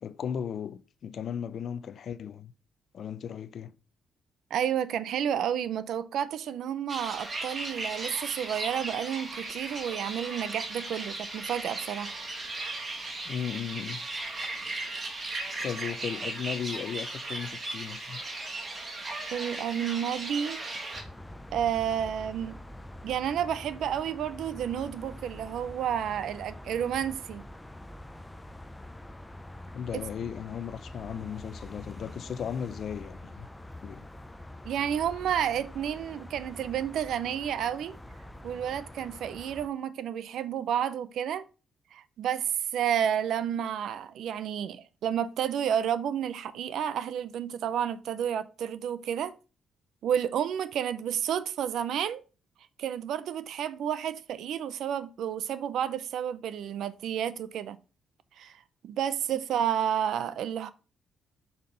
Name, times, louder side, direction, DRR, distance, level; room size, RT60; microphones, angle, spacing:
voice 1, 0.0-2.5 2.9-3.7 13.3-14.0 15.6-18.2 29.7-33.5 33.8-34.1, left 8 dB, 60° left, 0.4 m, -36 dB
voice 2, 4.5-12.1 19.3-20.6 21.5-22.6 23.0-27.4 34.6-38.0 38.4-41.5 41.9-49.4 50.0-52.2 52.8-57.8 58.4-58.6 58.8-60.7, right 9 dB, 75° right, 0.5 m, -31 dB
sound 1, 6.9-21.0, right 2 dB, 35° right, 1.7 m, -37 dB
sound 2, 20.9-39.7, left 1 dB, 10° left, 0.5 m, -45 dB
5.8 x 5.5 x 3.9 m
cardioid pair, 90°, 0 cm